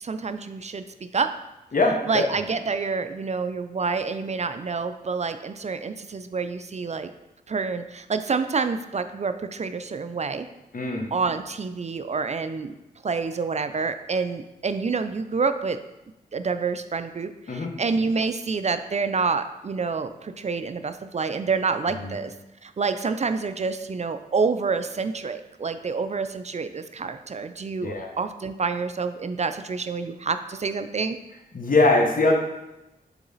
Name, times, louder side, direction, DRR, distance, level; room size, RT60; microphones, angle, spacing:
voice 1, 0.0-0.8 1.1-1.3 2.1-7.1 7.5-10.5 11.1-12.7 13.0-15.8 16.3-22.3 22.6-31.2, right 4 dB, 45° right, 10 dB, 0.4 m, -28 dB
voice 2, 1.7-2.3 10.7-11.0 17.5-17.7 21.9-22.1 27.8-28.1 31.5-32.3, left 2 dB, 55° left, 2 dB, 1.2 m, -22 dB
7.0 x 3.9 x 4.0 m, 0.97 s
cardioid pair, 50°, 16 cm